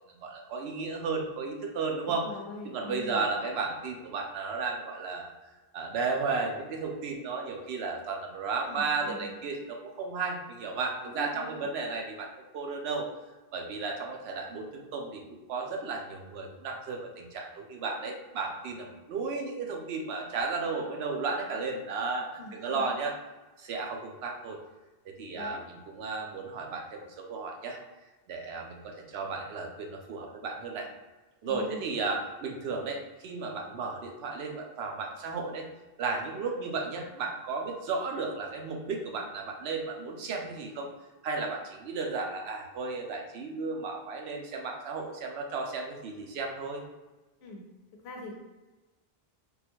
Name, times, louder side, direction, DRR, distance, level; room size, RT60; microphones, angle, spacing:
voice 1, 0.1-2.3 2.6-5.3 5.7-13.1 13.5-23.1 23.6-24.6 25.1-27.8 28.3-30.9 31.4-35.7 36.0-40.9 41.2-46.8, right 4 dB, 90° right, 1 dB, 0.8 m, -34 dB
voice 2, 1.9-3.2 8.7-9.3 11.0-11.7 22.4-22.9 25.3-25.6 31.4-31.8 47.4-47.6 48.0-48.4, left 1 dB, 90° left, 1 dB, 0.9 m, -43 dB
3.5 x 2.2 x 2.9 m, 1.2 s
omnidirectional pair, 1.0 m